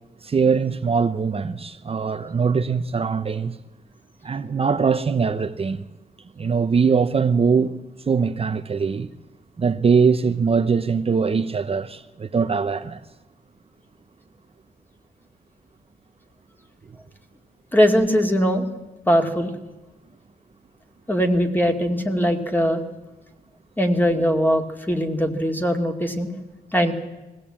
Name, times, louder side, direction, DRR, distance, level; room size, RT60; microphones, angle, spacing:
voice 1, 0.2-3.6 4.2-5.8 6.4-7.7 8.1-9.1 9.6-13.0, right 5 dB, 35° right, 0.9 m, -21 dB
voice 2, 17.7-18.7 19.1-19.5 21.1-22.8 23.8-26.3 26.7-26.9, equal, 10° left, 2.4 m, -20 dB
20.5 x 15.5 x 8.7 m
cardioid pair, 100°, 16 cm